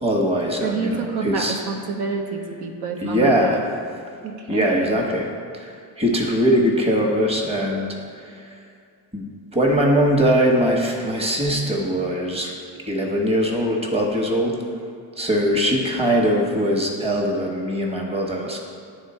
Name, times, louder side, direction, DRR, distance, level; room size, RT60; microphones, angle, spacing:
voice 1, 0.0-1.6 3.0-3.6 4.5-5.3 5.5-8.5 9.1-9.2 9.5-12.5 12.9-14.6 15.2-18.6, equal, 15° right, 0 dB, 1.2 m, -21 dB
voice 2, 0.6-3.6 4.2-5.1, right 4 dB, 80° right, 2 dB, 0.8 m, -28 dB
9.3 x 3.5 x 4.3 m, 2.3 s
cardioid pair, 80°, 39 cm